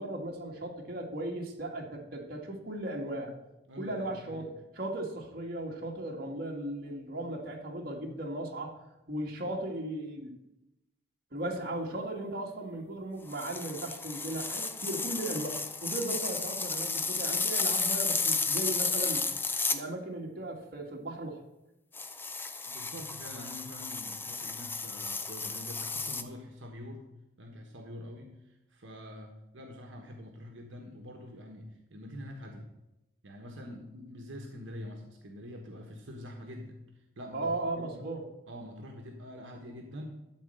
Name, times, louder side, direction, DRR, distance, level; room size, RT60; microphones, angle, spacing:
voice 1, 0.0-3.3 3.8-4.5 4.8-8.8 9.1-10.4 11.3-19.3 19.7-21.4 37.3-38.2, right 1 dB, 50° right, -1 dB, 1.8 m, -37 dB
voice 2, 3.7-4.5 22.7-27.0 27.4-32.7 33.2-38.1 38.5-40.2, left 1 dB, 75° right, 2 dB, 1.2 m, -45 dB
sound 1, 13.3-19.8 21.9-26.2, left 4 dB, 10° left, 0.4 m, -33 dB
12.5 x 4.3 x 7.7 m, 0.94 s
head